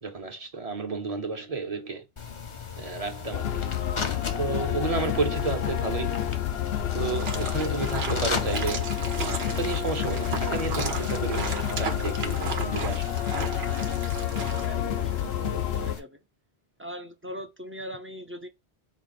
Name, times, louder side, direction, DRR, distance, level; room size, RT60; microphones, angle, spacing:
voice 1, 0.0-2.0 2.8-3.6 4.4-6.1 6.9-8.9 9.2-13.1 13.4-13.6, right 4 dB, 40° right, 0.9 m, -32 dB
sound 1, 2.2-16.0, left 5 dB, 35° left, 0.6 m, -38 dB
sound 2, 3.3-16.0, left 11 dB, 75° left, 0.8 m, -29 dB
sound 3, 7.1-14.6, right 5 dB, 85° right, 1.0 m, -35 dB
voice 2, 14.6-16.2 16.8-18.5, equal, 15° right, 0.4 m, -40 dB
4.2 x 2.3 x 4.0 m
omnidirectional pair, 1.0 m